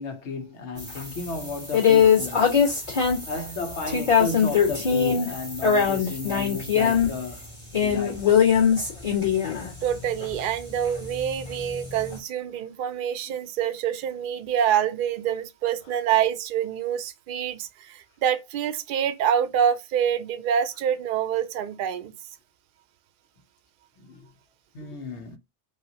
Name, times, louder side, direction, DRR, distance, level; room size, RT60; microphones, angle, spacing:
voice 1, 0.0-2.5 3.3-7.5 7.8-8.4 24.0-24.3 24.7-25.4, left 3 dB, 90° left, 1.1 m, -34 dB
sound 1, 0.8-7.5 7.7-10.4 10.8-12.2, left 7 dB, 35° left, 2.3 m, -22 dB
voice 2, 9.8-22.1, right 9 dB, 60° right, 0.6 m, -26 dB
5.3 x 2.5 x 2.8 m
omnidirectional pair, 1.1 m